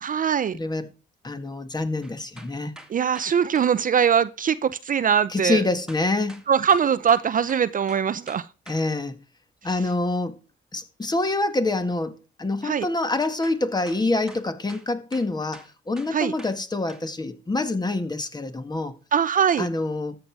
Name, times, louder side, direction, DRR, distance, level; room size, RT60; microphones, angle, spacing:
voice 1, 0.0-0.6 2.9-5.6 6.5-8.5 12.6-12.9 16.1-16.3 19.1-19.7, right 7 dB, 45° right, 0.6 m, -22 dB
voice 2, 0.5-0.9 1.2-2.7 5.3-6.4 8.7-9.2 9.6-10.4 10.7-18.9 19.6-20.2, left 2 dB, 20° left, 1.7 m, -26 dB
sound 1, 2.0-3.7 5.9-8.8 13.4-13.6 13.9-16.6 16.9-17.0, right 1 dB, 5° right, 2.0 m, -46 dB
13.0 x 7.8 x 4.7 m
cardioid pair, 90°, 20 cm